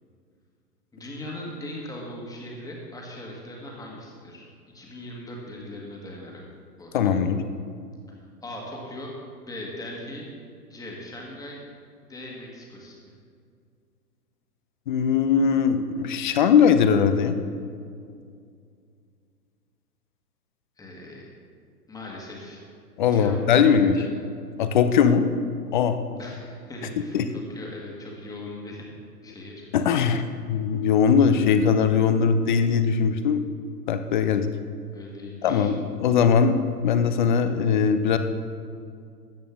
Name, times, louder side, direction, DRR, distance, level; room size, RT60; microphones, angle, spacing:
voice 1, 0.9-4.4 4.7-6.4 6.8-7.1 8.1-9.1 9.5-10.3 10.6-11.6 12.1-13.0 20.8-21.2 21.9-22.7 23.0-24.1 26.2-28.8 29.2-29.7 34.9-35.7, left 1 dB, 5° left, -2 dB, 1.6 m, -39 dB
voice 2, 6.9-7.4 14.9-17.4 23.0-24.0 24.6-25.3 25.7-26.0 27.1-27.3 29.7-30.2 30.5-33.4 33.9-34.5 35.4-38.2, left 6 dB, 30° left, 10 dB, 0.5 m, -20 dB
13.0 x 8.5 x 3.6 m, 2.3 s
figure-of-eight pair, 115°, 48 cm